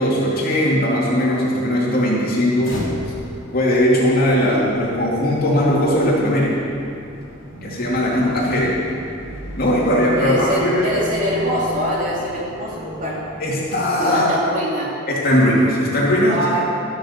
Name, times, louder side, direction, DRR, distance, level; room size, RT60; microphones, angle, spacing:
voice 1, 0.0-2.8 3.5-6.6 7.6-8.8 9.6-11.0 13.4-14.3 15.1-16.4, equal, 50° left, -5 dB, 2.6 m, -18 dB
sound 1, 2.6-14.6, left 1 dB, 90° left, 2.7 m, -35 dB
voice 2, 8.0-8.5 10.1-13.2 14.0-14.9 16.3-16.7, equal, 40° right, -5 dB, 2.8 m, -24 dB
13.5 x 6.8 x 6.8 m, 2.6 s
head